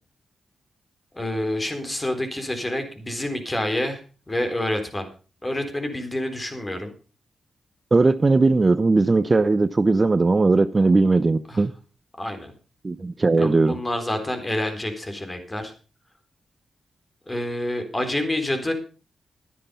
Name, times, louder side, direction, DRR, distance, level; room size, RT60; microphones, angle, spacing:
voice 1, 1.1-4.0 4.3-5.1 5.4-6.9 11.5-11.6 12.2-12.5 13.4-15.7 17.3-18.7, left 1 dB, 25° left, 3.9 m, -28 dB
voice 2, 7.9-11.7 12.8-13.8, right 3 dB, 35° right, 0.8 m, -18 dB
11.5 x 10.0 x 5.5 m
cardioid pair, 60°, 0 cm